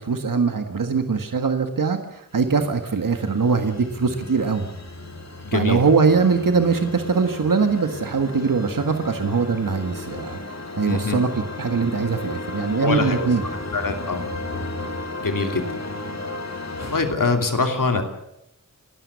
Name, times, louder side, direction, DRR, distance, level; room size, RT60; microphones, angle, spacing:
voice 1, 0.0-4.7 5.5-10.4 10.7-13.4, right 5 dB, 80° right, 6 dB, 1.7 m, -22 dB
sound 1, 2.4-17.1, left 2 dB, 55° left, 2.5 m, -34 dB
voice 2, 5.4-5.8 10.9-11.2 12.8-13.3 13.7-14.2 15.2-15.7 16.9-18.0, left 3 dB, 80° left, 5 dB, 2.9 m, -23 dB
29.0 x 13.0 x 8.3 m, 0.85 s
wide cardioid pair, 80°, 32 cm